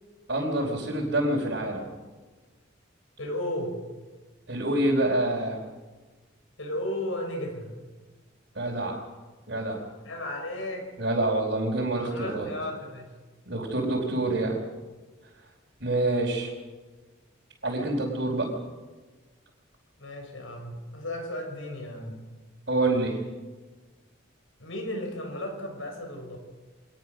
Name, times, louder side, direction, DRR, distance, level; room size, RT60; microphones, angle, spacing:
voice 1, 0.3-1.9 4.5-5.6 8.5-9.0 9.5-9.8 11.0-12.5 13.5-14.6 15.8-16.5 17.6-18.5 22.7-23.2, right 2 dB, 60° right, -4 dB, 4.5 m, -26 dB
voice 2, 3.2-3.8 6.6-7.9 10.0-10.9 11.9-13.1 20.0-22.1 24.6-26.4, left 1 dB, 85° left, 3 dB, 6.6 m, -34 dB
25.0 x 19.5 x 6.3 m, 1.3 s
head